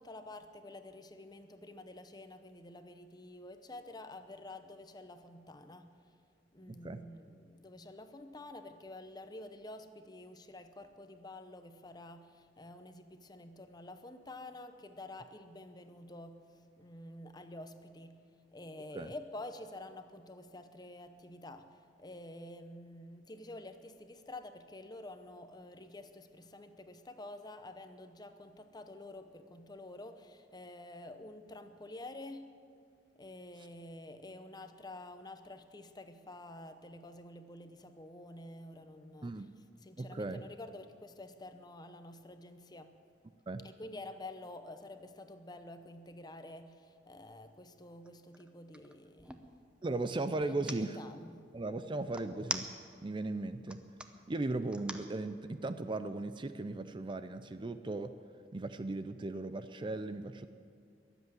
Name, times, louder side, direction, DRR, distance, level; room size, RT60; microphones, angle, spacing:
voice 1, 0.0-5.9 6.5-16.5 16.8-18.2 18.5-32.6 33.2-39.5 39.8-42.9 43.6-49.4 50.5-51.5, left 2 dB, 25° left, 9 dB, 0.8 m, -49 dB
voice 2, 6.7-7.0 18.9-19.1 39.2-39.5 40.0-40.4 43.5-43.6 49.8-51.0 51.5-52.7 53.0-53.8 54.3-58.1 58.5-60.5, right 2 dB, 25° right, 10 dB, 0.5 m, -37 dB
sound 1, 47.3-47.5 47.9-49.5 50.4-50.8 52.1-53.1 53.6-54.1 54.7-55.1, right 1 dB, 5° right, 0.8 m, -41 dB
22.0 x 8.1 x 7.8 m, 2.2 s
head